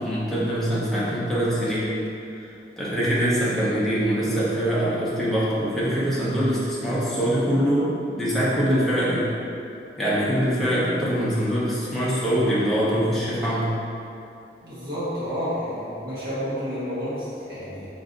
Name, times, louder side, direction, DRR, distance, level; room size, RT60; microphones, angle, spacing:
voice 1, 0.0-1.9 2.8-9.3 10.0-13.8, equal, ahead, -10 dB, 0.7 m, -23 dB
voice 2, 14.6-17.9, equal, 55° right, -12 dB, 1.2 m, -30 dB
3.9 x 2.6 x 3.8 m, 2.7 s
head